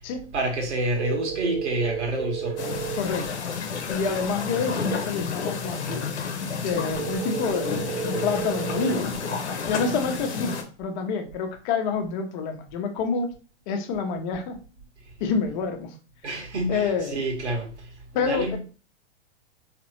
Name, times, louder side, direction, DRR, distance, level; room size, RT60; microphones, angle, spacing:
voice 1, 0.3-2.6 16.2-18.6, right 2 dB, 70° right, 1.6 m, -28 dB
sound 1, 1.0-3.0 7.0-9.0, right 9 dB, 50° right, 0.6 m, -32 dB
sound 2, 2.6-10.6, left 5 dB, 70° left, 1.0 m, -31 dB
voice 2, 2.9-3.3 3.9-6.0 6.6-9.1 9.7-13.3 13.7-14.6 15.2-15.9 16.7-17.2 18.1-18.6, left 5 dB, 40° left, 0.8 m, -28 dB
3.8 x 3.3 x 3.1 m
figure-of-eight pair, 110°, 35 cm